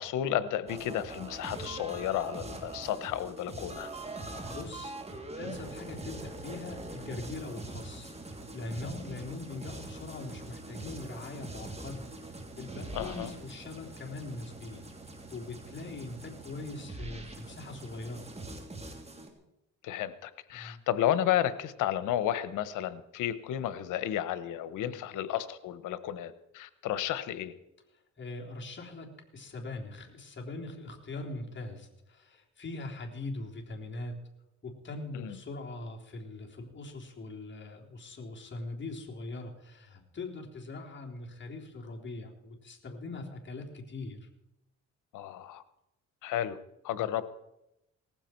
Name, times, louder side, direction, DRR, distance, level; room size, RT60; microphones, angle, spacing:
voice 1, 0.0-3.9 12.9-13.3 19.8-27.5 35.1-35.4 45.1-45.6 46.2-47.2, left 11 dB, 90° left, 14 dB, 1.1 m, -32 dB
sound 1, 0.7-19.3, right 2 dB, 20° right, 3.1 m, -43 dB
voice 2, 4.2-5.0 5.4-14.9 15.3-18.2 20.5-20.8 24.8-25.0 28.2-34.2 34.6-44.3 47.0-47.1, left 2 dB, 40° left, 1 dB, 3.6 m, -42 dB
19.0 x 15.0 x 4.5 m, 0.87 s
cardioid pair, 90°, 30 cm